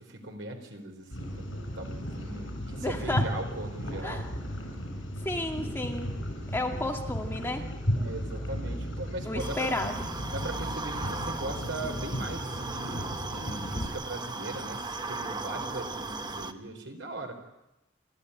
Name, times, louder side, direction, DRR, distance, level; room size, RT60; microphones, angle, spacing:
voice 1, 0.0-4.2 8.0-9.7 10.3-17.4, right 2 dB, 70° right, 4 dB, 4.1 m, -39 dB
sound 1, 1.1-13.9, equal, 75° left, 7.5 m, -35 dB
voice 2, 2.8-3.3 4.0-4.3 5.2-6.1 6.5-7.6 9.3-10.1, left 1 dB, 10° left, 2 dB, 2.2 m, -32 dB
sound 2, 9.4-16.5, right 3 dB, 25° right, 1.1 m, -37 dB
28.0 x 13.0 x 9.8 m, 0.97 s
head